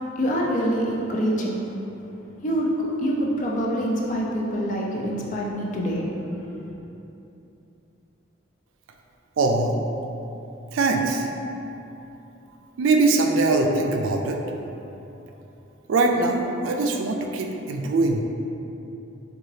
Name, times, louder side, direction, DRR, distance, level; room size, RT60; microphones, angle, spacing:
voice 1, 0.2-1.6 2.4-6.7, equal, 40° left, -3 dB, 0.4 m, -26 dB
voice 2, 9.4-9.8 10.7-11.3 12.8-14.4 15.9-18.2, right 3 dB, 90° right, 2 dB, 0.3 m, -22 dB
3.8 x 2.4 x 3.1 m, 2.9 s
head